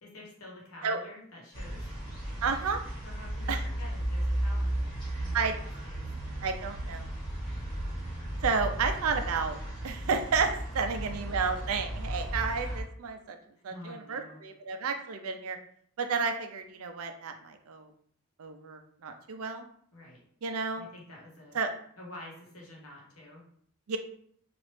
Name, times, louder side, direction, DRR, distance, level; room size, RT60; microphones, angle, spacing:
voice 1, 0.0-1.9 3.0-6.0 7.6-7.8 13.5-14.4 19.9-20.2 20.7-21.6 22.0-23.4, left 1 dB, 80° left, -3 dB, 1.1 m, -49 dB
sound 1, 1.5-12.8, right 1 dB, 20° left, 1.2 m, -35 dB
voice 2, 2.4-2.8 3.5-3.6 5.3-5.5 6.4-7.1 8.4-9.6 9.8-13.4 13.6-15.6 16.0-17.9 18.4-19.6 20.4-20.9 21.5-21.7 23.9-24.0, right 5 dB, 85° right, 6 dB, 0.5 m, -31 dB
3.0 x 2.5 x 3.2 m, 0.63 s
head